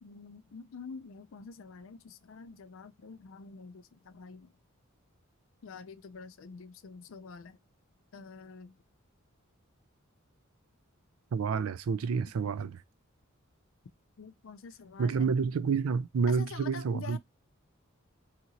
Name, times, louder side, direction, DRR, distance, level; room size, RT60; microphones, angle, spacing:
voice 1, 0.0-4.5 5.6-7.6 8.1-8.7 14.2-15.3 16.3-17.2, left 5 dB, 65° left, 0.4 m, -47 dB
voice 2, 11.3-12.8 15.0-17.2, right 5 dB, 80° right, 0.4 m, -29 dB
2.8 x 2.5 x 2.8 m
head